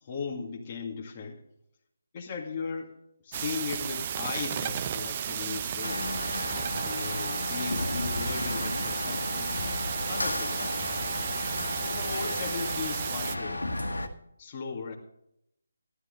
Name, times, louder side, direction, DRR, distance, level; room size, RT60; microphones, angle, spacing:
voice 1, 0.0-1.4 2.1-2.9 3.2-6.2 6.9-9.5 10.1-10.8 11.6-13.6 14.4-15.0, left 5 dB, 30° left, -1 dB, 2.1 m, -37 dB
sound 1, 3.3-13.4, right 9 dB, 30° right, 0.7 m, -34 dB
sound 2, 5.8-14.1, left 2 dB, 85° left, 1.7 m, -33 dB
15.0 x 11.5 x 3.9 m, 0.75 s
figure-of-eight pair, 150°, 0 cm